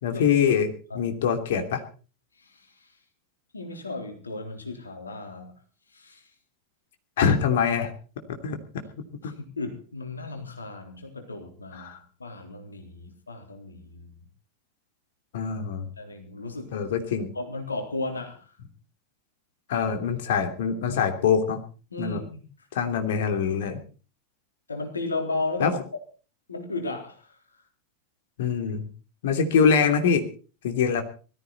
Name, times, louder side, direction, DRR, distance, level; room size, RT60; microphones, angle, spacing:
voice 1, 0.0-1.8 7.2-7.9 8.3-8.8 9.2-9.3 11.7-12.0 15.3-15.9 16.7-17.3 19.7-21.6 22.0-22.2 22.7-23.8 25.6-25.7 28.4-28.8 29.2-30.2 30.6-31.0, left 6 dB, 55° left, 6 dB, 3.0 m, -24 dB
voice 2, 2.4-2.9 3.5-5.5 5.9-6.3 9.6-11.9 12.2-14.3 16.0-16.9 17.4-18.5 21.9-22.4 24.7-25.8 26.5-27.4, left 2 dB, 75° left, 4 dB, 3.7 m, -35 dB
20.5 x 14.5 x 4.1 m, 0.37 s
figure-of-eight pair, 90°, 0 cm